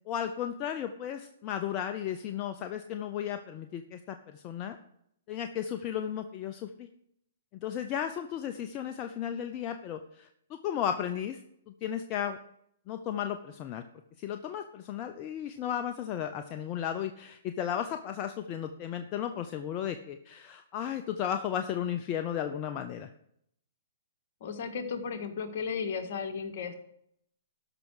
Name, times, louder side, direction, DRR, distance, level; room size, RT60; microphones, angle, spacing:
voice 1, 0.1-4.8 5.3-6.9 7.5-11.4 11.7-12.4 12.9-13.8 14.2-23.1, left 9 dB, 35° left, 7 dB, 0.7 m, -34 dB
voice 2, 24.4-26.7, left 6 dB, 55° left, 5 dB, 1.7 m, -34 dB
13.0 x 5.9 x 6.5 m, 0.73 s
hypercardioid pair, 125°, 0 cm